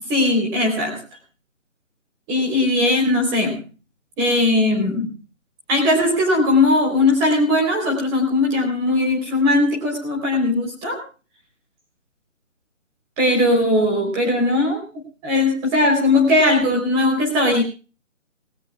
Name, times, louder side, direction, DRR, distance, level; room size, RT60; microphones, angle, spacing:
voice 1, 0.1-1.0 2.3-3.6 4.2-5.1 5.7-11.0 13.2-14.9 15.2-17.6, left 2 dB, 10° right, 0 dB, 3.7 m, -19 dB
21.0 x 17.0 x 2.4 m, 0.34 s
hypercardioid pair, 170°, 39 cm